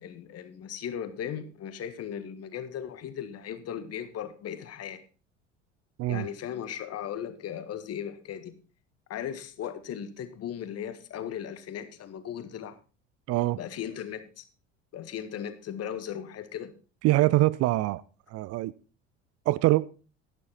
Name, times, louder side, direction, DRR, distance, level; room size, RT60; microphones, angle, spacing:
voice 1, 0.0-5.0 6.1-8.6 9.1-12.8 13.6-14.4 14.9-16.8, left 9 dB, 45° left, 1.6 m, -37 dB
voice 2, 13.3-13.6 17.0-18.0 18.3-18.7 19.5-19.9, right 18 dB, 45° right, 0.5 m, -23 dB
12.0 x 11.0 x 4.1 m
figure-of-eight pair, 65°, 36 cm